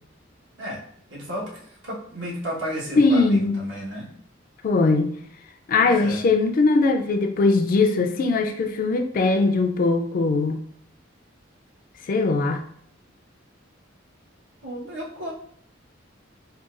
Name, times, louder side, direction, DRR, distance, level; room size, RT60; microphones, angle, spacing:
voice 1, 1.1-4.1 5.8-6.2 14.6-15.3, equal, 70° right, -5 dB, 1.2 m, -33 dB
voice 2, 3.0-3.5 4.6-5.2 5.7-10.6 12.1-12.6, left 3 dB, 45° left, 5 dB, 0.3 m, -20 dB
3.8 x 2.3 x 2.4 m, 0.63 s
head